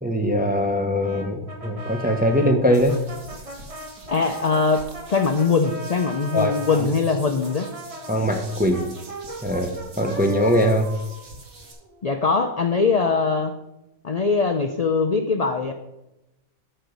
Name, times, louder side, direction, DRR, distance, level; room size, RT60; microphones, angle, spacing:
voice 1, 0.0-3.0 6.3-6.9 8.1-8.9 9.4-10.9, equal, 10° right, 4 dB, 0.6 m, -21 dB
Brass instrument, 1.0-6.8 7.4-12.1, right 1 dB, 25° right, 1.7 m, -38 dB
sound 1, 2.7-11.7, right 2 dB, 75° right, 2.4 m, -45 dB
voice 2, 4.1-7.7 12.0-13.5 14.0-15.7, left 4 dB, 55° left, 6 dB, 0.4 m, -22 dB
12.5 x 4.6 x 5.2 m, 0.95 s
omnidirectional pair, 1.5 m